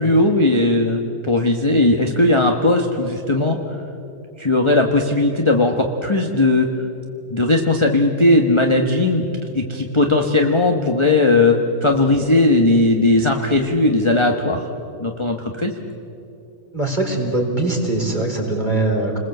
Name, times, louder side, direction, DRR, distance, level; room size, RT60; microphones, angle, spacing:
voice 1, 0.0-3.8 4.4-6.7 7.3-9.2 9.5-14.7 15.0-15.7, left 2 dB, 20° left, 2 dB, 1.3 m, -17 dB
voice 2, 16.7-19.2, right 2 dB, 30° right, 1 dB, 4.4 m, -21 dB
29.5 x 21.0 x 7.9 m, 2.8 s
omnidirectional pair, 1.7 m